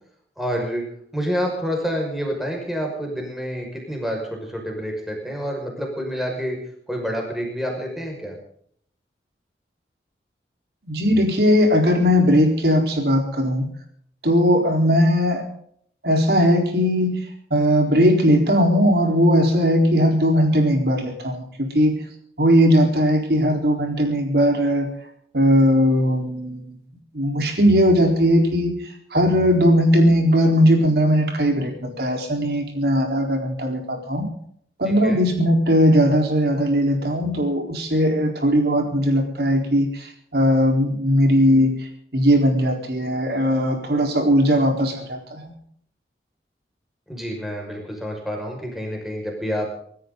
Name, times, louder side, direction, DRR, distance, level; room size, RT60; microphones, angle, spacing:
voice 1, 0.4-0.8 1.1-6.6 6.9-8.4 35.0-35.2 47.1-49.7, equal, ahead, 0 dB, 5.7 m, -28 dB
voice 2, 10.8-13.7 14.2-15.4 16.0-17.2 17.5-22.0 22.4-24.9 25.3-26.8 27.1-28.7 29.1-34.3 34.8-41.7 42.1-45.5, equal, 65° right, 2 dB, 4.3 m, -18 dB
26.0 x 13.5 x 4.0 m, 0.63 s
head